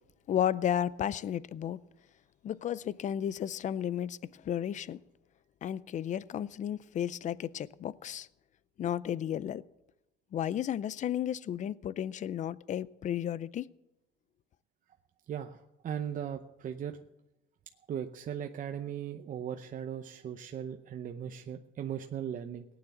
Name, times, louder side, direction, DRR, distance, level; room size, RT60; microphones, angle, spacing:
voice 1, 0.3-1.8 2.4-5.0 5.6-8.3 8.8-9.6 10.3-13.7, left 10 dB, 40° left, 0.5 m, -33 dB
voice 2, 15.3-17.0 17.9-22.6, right 9 dB, 40° right, 0.8 m, -38 dB
18.5 x 9.4 x 7.2 m
cardioid pair, 140°, 20 cm